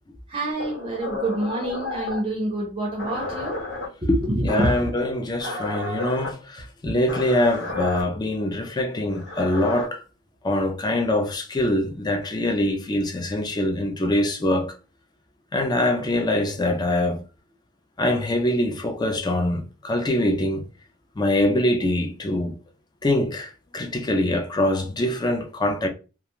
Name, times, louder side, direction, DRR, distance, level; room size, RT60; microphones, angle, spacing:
voice 1, 0.3-3.6 4.0-4.9 6.9-7.0, right 1 dB, 30° right, 0.6 m, -27 dB
sound 1, 0.6-2.3 3.0-3.9 4.5-4.9 5.4-6.3 7.1-8.0 9.1-9.9, left 2 dB, 85° left, 1.3 m, -32 dB
voice 2, 4.1-10.0 10.4-14.7 15.5-17.2 18.0-20.6 21.2-22.6 23.0-25.9, left 1 dB, 20° left, 0.4 m, -24 dB
2.4 x 2.3 x 2.9 m
head